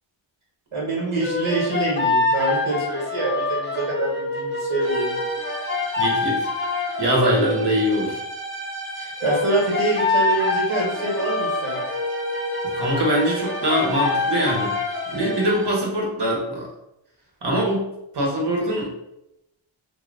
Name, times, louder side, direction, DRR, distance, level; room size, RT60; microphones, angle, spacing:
voice 1, 0.7-5.2 9.0-11.8, right 2 dB, 75° right, -4 dB, 1.4 m, -25 dB
sound 1, 1.2-7.4 9.2-15.4, left 3 dB, 25° left, 0.6 m, -25 dB
sound 2, 4.8-15.9, right 2 dB, 25° right, 0.9 m, -35 dB
voice 2, 6.0-6.4 7.0-8.2 12.6-14.8 15.1-16.7 17.4-18.9, equal, 55° right, -2 dB, 1.2 m, -23 dB
2.9 x 2.4 x 3.8 m, 0.86 s
wide cardioid pair, 85°, 49 cm